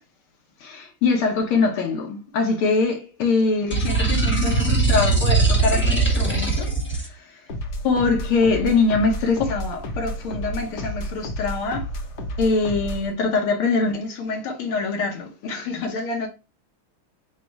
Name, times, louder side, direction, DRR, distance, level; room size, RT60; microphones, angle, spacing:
voice 1, 0.6-7.3 7.8-11.9 12.4-16.3, left 4 dB, 85° left, 1.7 m, -23 dB
sound 1, 3.7-7.1, right 3 dB, 10° left, 0.5 m, -20 dB
sound 2, 7.5-13.1, equal, 65° left, 1.1 m, -31 dB
4.1 x 2.3 x 4.4 m
omnidirectional pair, 2.3 m